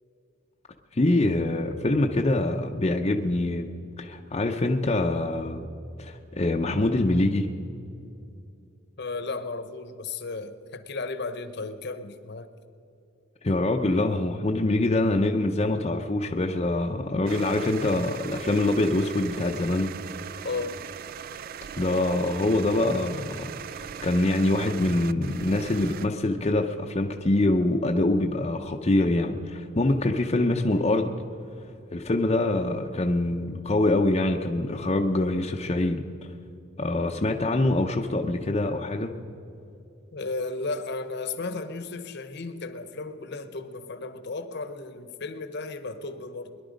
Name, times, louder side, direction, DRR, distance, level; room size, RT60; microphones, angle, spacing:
voice 1, 0.9-3.7 4.0-5.7 6.0-7.5 13.4-19.9 21.8-31.1 31.9-36.0 36.8-39.1, left 2 dB, 30° left, 1 dB, 0.6 m, -24 dB
voice 2, 9.0-12.5 20.4-20.8 40.1-46.6, left 3 dB, 55° left, 11 dB, 0.9 m, -34 dB
sound 1, 17.3-26.1, right 8 dB, 45° right, 0.3 m, -39 dB
21.5 x 11.0 x 5.1 m, 2.7 s
head